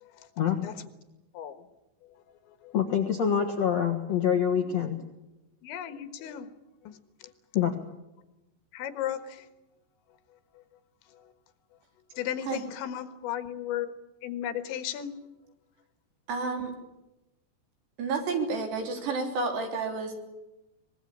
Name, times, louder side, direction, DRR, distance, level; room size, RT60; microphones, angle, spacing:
voice 1, 0.4-0.7 2.7-5.0 7.5-7.9, left 8 dB, 60° left, 4 dB, 1.8 m, -26 dB
voice 2, 5.6-6.5 6.9-7.0 8.7-9.4 12.2-13.9 14.2-15.1, left 10 dB, 90° left, 10 dB, 3.8 m, -34 dB
voice 3, 16.3-16.7 18.0-20.1, right 4 dB, 70° right, 4 dB, 5.4 m, -30 dB
23.5 x 21.0 x 8.6 m, 0.97 s
omnidirectional pair, 5.1 m